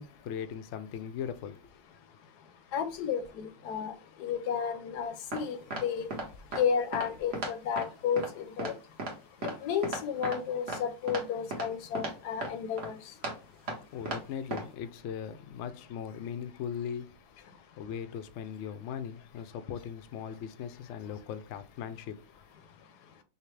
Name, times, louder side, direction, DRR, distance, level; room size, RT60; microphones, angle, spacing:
voice 1, 0.0-1.6 13.9-17.1 17.8-22.2, left 8 dB, 70° left, 0.7 m, -39 dB
voice 2, 2.7-3.9 4.2-6.1 6.6-8.7 9.4-13.0, left 7 dB, 85° left, 1.2 m, -32 dB
sound 1, 5.3-5.4 5.7-5.8 6.1-6.2 6.5-6.6 6.9-7.1 7.3-7.5 7.8-7.9 8.2-8.3 8.6-8.7 9.0-9.1 9.4-9.5 9.8-10.4 10.7-10.8 11.1-11.2 11.5-11.7 11.9-12.1 12.4-12.5 12.8-12.9 13.2-13.3 13.7-13.8 14.1-14.2 14.5-14.6, right 2 dB, 50° right, 1.4 m, -34 dB
5.5 x 2.1 x 3.2 m
omnidirectional pair, 1.7 m